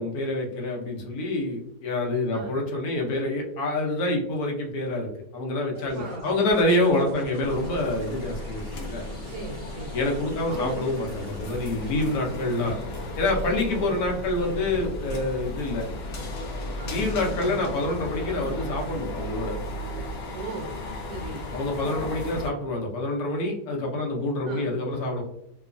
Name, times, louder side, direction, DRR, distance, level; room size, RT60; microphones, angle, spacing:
voice 1, 0.0-9.0 9.9-12.8 13.2-15.8 16.9-19.6 21.5-25.2, left 2 dB, 70° left, 1 dB, 1.1 m, -27 dB
sound 1, 5.7-15.2, left 1 dB, 30° right, 0.7 m, -44 dB
voice 2, 5.9-6.5 7.0-7.3 9.3-10.0 10.5-10.9 13.7-13.9 16.7-17.7 20.3-20.7 21.0-21.4 24.4-24.7, right 3 dB, 70° right, -1 dB, 0.9 m, -37 dB
sound 2, 7.4-22.5, left 1 dB, 90° left, 0.5 m, -35 dB
3.0 x 2.2 x 2.4 m, 0.73 s
omnidirectional pair, 1.8 m